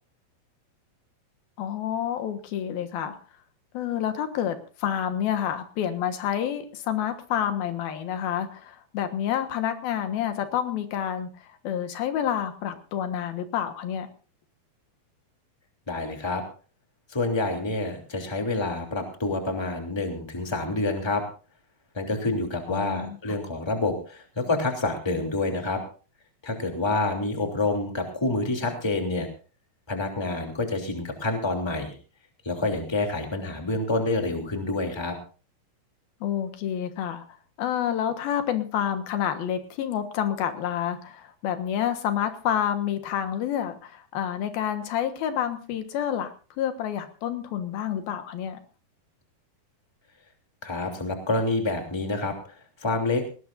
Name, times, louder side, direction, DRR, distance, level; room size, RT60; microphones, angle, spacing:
voice 1, 1.6-3.2 3.7-14.1 22.7-23.4 36.2-37.2 37.6-48.6, left 9 dB, 80° left, 8 dB, 3.3 m, -29 dB
voice 2, 15.9-16.4 17.1-21.2 21.9-25.8 26.4-29.3 29.9-31.9 32.4-35.2 50.6-52.3 52.8-53.2, left 2 dB, 10° left, 3 dB, 2.5 m, -27 dB
19.0 x 19.0 x 2.6 m, 0.37 s
omnidirectional pair, 4.3 m